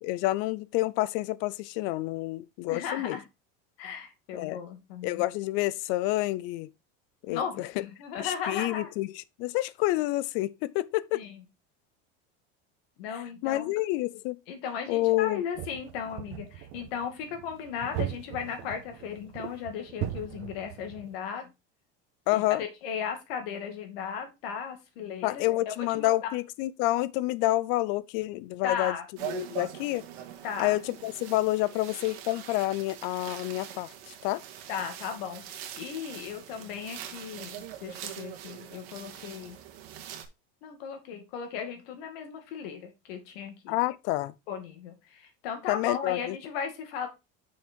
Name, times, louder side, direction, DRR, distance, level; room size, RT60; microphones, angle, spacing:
voice 1, 0.0-3.2 4.3-4.6 5.0-6.7 7.2-7.7 8.2-11.2 13.4-14.4 14.9-15.4 22.3-22.6 25.2-29.0 29.2-30.1 30.6-33.9 34.2-34.4 43.7-44.3 45.7-46.4, left 17 dB, 40° left, 0.4 m, -28 dB
voice 2, 2.7-3.2 3.8-5.3 7.3-8.9 11.1-11.4 13.0-13.7 14.5-21.5 22.3-26.1 28.6-29.0 30.4-30.8 34.7-39.6 40.6-43.8 44.5-47.1, left 7 dB, 80° left, 2.3 m, -36 dB
sound 1, 15.5-21.1, right 12 dB, 45° right, 1.1 m, -39 dB
sound 2, 29.2-40.2, right 11 dB, 85° right, 1.8 m, -43 dB
6.4 x 5.6 x 4.4 m
cardioid pair, 180°, 29 cm